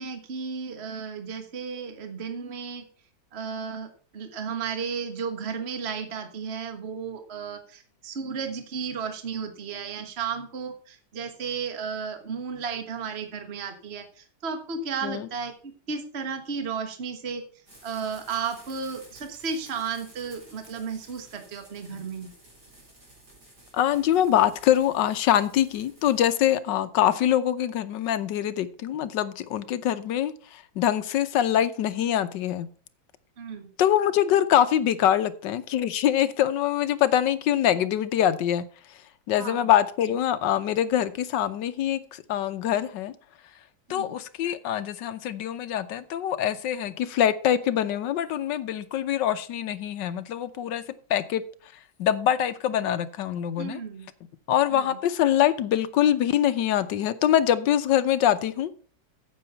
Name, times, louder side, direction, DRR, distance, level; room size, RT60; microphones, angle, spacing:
voice 1, 0.0-2.8 3.3-3.9 4.1-17.4 17.8-22.3 33.4-33.7 39.4-39.7 43.9-44.1 53.6-54.1 54.7-55.0, right 6 dB, 35° right, 1.5 m, -34 dB
sound 1, 17.7-26.3, right 1 dB, 50° right, 4.9 m, -53 dB
voice 2, 23.7-32.7 33.8-38.7 39.3-43.1 43.9-50.8 51.1-51.4 52.0-53.8 54.5-58.7, left 11 dB, 70° left, 1.3 m, -24 dB
9.0 x 7.8 x 5.5 m
omnidirectional pair, 2.2 m